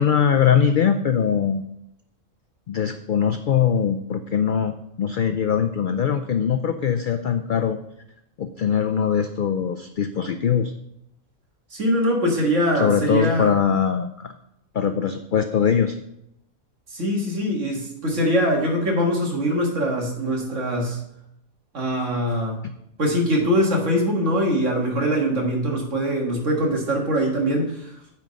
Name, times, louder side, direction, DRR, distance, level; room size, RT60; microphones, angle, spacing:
voice 1, 0.0-1.6 2.7-7.8 8.4-10.7 12.7-14.3 14.7-16.0, left 7 dB, 80° left, 8 dB, 0.4 m, -21 dB
voice 2, 11.7-13.5 16.9-21.0 21.7-22.6 23.0-28.0, equal, 60° right, 0 dB, 2.0 m, -22 dB
9.1 x 4.3 x 5.2 m, 0.78 s
omnidirectional pair, 1.4 m